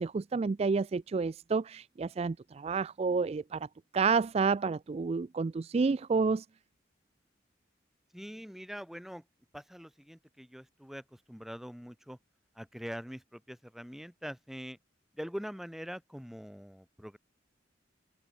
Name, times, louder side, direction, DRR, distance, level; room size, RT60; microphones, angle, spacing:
voice 1, 0.0-3.7 3.9-6.5, right 4 dB, 35° right, 0.3 m, -30 dB
voice 2, 8.1-9.2 9.5-12.2 12.6-14.8 15.1-17.2, equal, ahead, 3.7 m, -43 dB
head